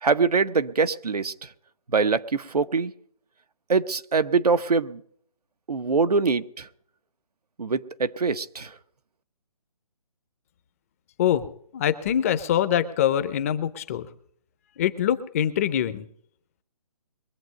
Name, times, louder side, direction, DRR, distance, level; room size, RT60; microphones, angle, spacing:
voice 1, 0.0-1.5 1.9-2.9 3.7-5.0 5.7-6.7 7.6-8.7, right 4 dB, 85° right, 10 dB, 0.9 m, -23 dB
voice 2, 11.7-14.1 14.8-16.1, left 10 dB, 25° left, 13 dB, 0.6 m, -24 dB
23.0 x 7.9 x 5.2 m, 0.65 s
figure-of-eight pair, 150°, 19 cm